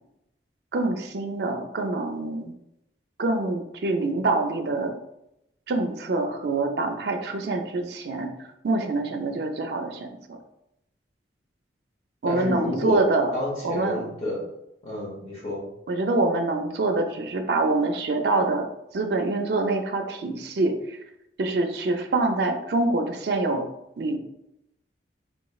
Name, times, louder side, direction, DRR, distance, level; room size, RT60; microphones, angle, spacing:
voice 1, 0.7-2.5 3.2-4.9 5.7-8.3 8.6-10.4 12.2-13.3 13.6-14.0 15.9-18.7 18.9-21.0 21.4-23.7 24.0-24.2, right 2 dB, 65° right, 5 dB, 0.4 m, -25 dB
voice 2, 12.2-13.0 13.3-14.4 14.8-15.7, left 2 dB, 35° left, -5 dB, 1.0 m, -29 dB
3.4 x 3.1 x 2.3 m, 0.83 s
head